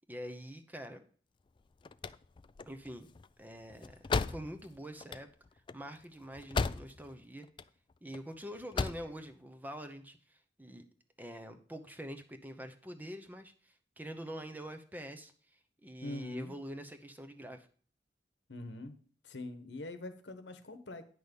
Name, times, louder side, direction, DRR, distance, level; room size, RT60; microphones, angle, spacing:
voice 1, 0.1-1.0 2.7-3.1 3.4-5.3 5.7-7.5 8.0-10.9 11.2-17.7, equal, 10° right, 7 dB, 0.8 m, -45 dB
sound 1, 1.6-7.2 7.4-8.2 8.5-9.1, left 4 dB, 25° left, 0.3 m, -36 dB
voice 2, 16.0-16.5 18.5-19.0 19.2-21.0, left 2 dB, 85° left, 9 dB, 1.1 m, -43 dB
9.6 x 6.1 x 5.2 m, 0.44 s
head